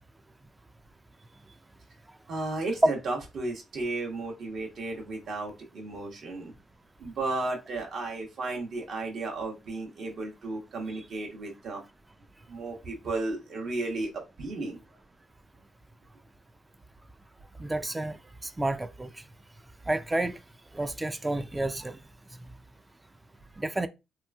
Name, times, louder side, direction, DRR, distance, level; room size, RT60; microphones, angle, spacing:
voice 1, 2.3-6.5 7.0-11.8 12.5-14.8, right 2 dB, 60° right, 1.1 m, -34 dB
voice 2, 17.6-18.2 18.6-19.1 19.9-20.4 20.7-22.0 23.6-23.9, right 2 dB, 15° right, 0.3 m, -30 dB
2.9 x 2.5 x 2.3 m
cardioid pair, 90°, 0 cm